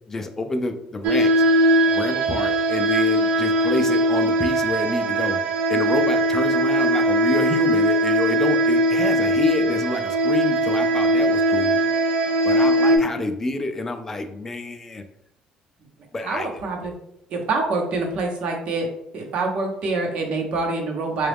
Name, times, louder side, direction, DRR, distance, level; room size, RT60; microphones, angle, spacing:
voice 1, 0.1-1.4 1.9-5.4 5.7-11.8 12.4-15.0 16.1-16.5, left 2 dB, 15° left, 6 dB, 0.3 m, -28 dB
sound 1, 1.0-13.0, right 1 dB, 75° right, 0.5 m, -20 dB
voice 2, 16.2-16.9 17.3-18.9 19.1-21.3, right 3 dB, 55° right, 2 dB, 0.8 m, -25 dB
3.9 x 2.3 x 3.4 m, 0.78 s
cardioid pair, 165°, 2 cm